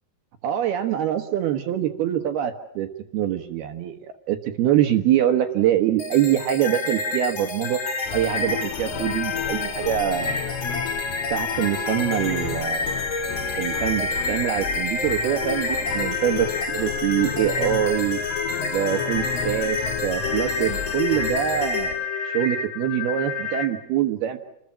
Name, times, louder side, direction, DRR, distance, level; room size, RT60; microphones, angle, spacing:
voice 1, 0.4-7.8 8.1-10.4 11.3-13.1 13.6-18.2 18.7-24.4, right 11 dB, 70° right, 7 dB, 2.5 m, -24 dB
sound 1, 6.0-23.6, left 4 dB, 45° left, 1.6 m, -28 dB
sound 2, 8.0-22.0, left 10 dB, 90° left, 3.9 m, -34 dB
29.5 x 21.0 x 7.4 m, 0.86 s
omnidirectional pair, 5.8 m